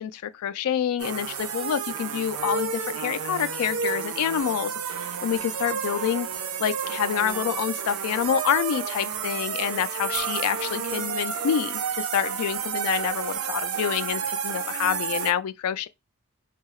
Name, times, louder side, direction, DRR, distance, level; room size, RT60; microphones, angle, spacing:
voice 1, 0.0-6.3 6.6-15.9, left 9 dB, 80° left, 0.3 m, -27 dB
sound 1, 1.0-15.3, right 7 dB, 70° right, 0.4 m, -30 dB
2.7 x 2.3 x 2.9 m
head